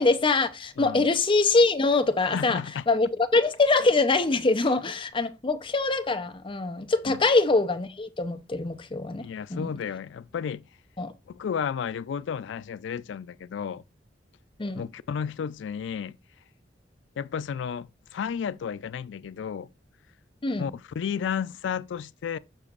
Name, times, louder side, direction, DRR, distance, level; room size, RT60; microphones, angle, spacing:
voice 1, 0.0-2.6 2.9-9.7 11.0-11.1 14.6-14.9 20.4-20.7, left 3 dB, 30° left, 0.6 m, -24 dB
voice 2, 2.2-2.8 7.0-7.2 9.2-10.6 11.3-13.8 14.7-16.2 17.2-19.7 20.6-22.4, left 7 dB, 80° left, 0.3 m, -32 dB
6.8 x 5.7 x 2.4 m
head